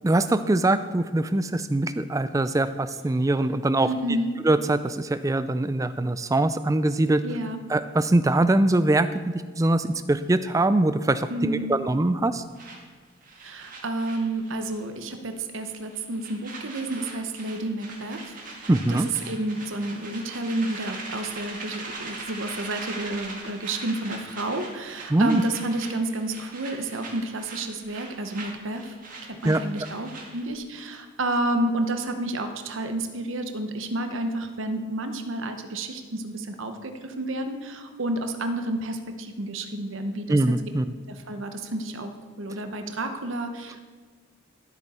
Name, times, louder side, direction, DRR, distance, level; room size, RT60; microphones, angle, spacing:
voice 1, 0.0-3.9 4.4-7.2 7.7-9.1 9.3-12.4 18.7-19.1 25.1-25.4 29.4-29.6 40.3-40.8, right 2 dB, 15° right, 12 dB, 0.3 m, -22 dB
voice 2, 3.8-4.3 7.2-7.6 11.3-11.7 13.4-28.9 29.2-40.5 41.1-42.1 42.4-43.8, right 2 dB, 65° right, 7 dB, 0.9 m, -30 dB
sound 1, 12.6-14.8 15.1-15.3 15.6-30.5, right 3 dB, 40° right, 2.0 m, -41 dB
13.0 x 8.1 x 4.3 m, 1.5 s
head